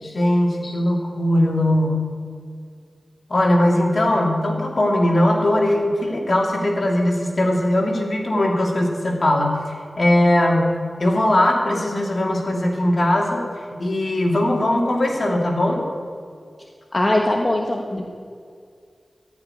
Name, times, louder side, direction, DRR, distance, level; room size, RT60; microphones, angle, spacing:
voice 1, 0.0-2.1 3.3-9.6 10.0-10.7 11.0-13.4 13.8-15.8, left 1 dB, 65° left, -1 dB, 2.6 m, -19 dB
voice 2, 16.9-18.0, left 1 dB, 45° left, 0 dB, 1.2 m, -21 dB
14.5 x 5.9 x 10.0 m, 2.3 s
wide cardioid pair, 55°, 0 cm